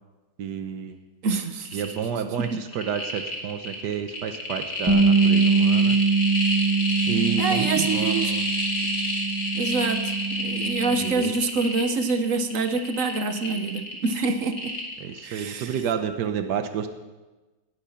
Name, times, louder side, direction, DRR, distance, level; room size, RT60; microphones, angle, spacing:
voice 1, 0.4-1.0 1.7-6.0 7.1-8.4 11.0-11.3 15.0-16.9, right 7 dB, 85° right, 8 dB, 1.5 m, -30 dB
voice 2, 1.2-1.8 7.4-8.3 9.5-10.1 10.4-14.7 15.2-15.7, right 4 dB, 55° right, 9 dB, 1.3 m, -26 dB
sound 1, 1.3-1.4 1.6-2.0 2.3-15.4 15.7-15.8, left 1 dB, 60° left, 3.1 m, -29 dB
Bass guitar, 4.9-11.1, right 4 dB, 15° right, 1.0 m, -23 dB
18.5 x 9.8 x 5.7 m, 1.2 s
omnidirectional pair, 1.8 m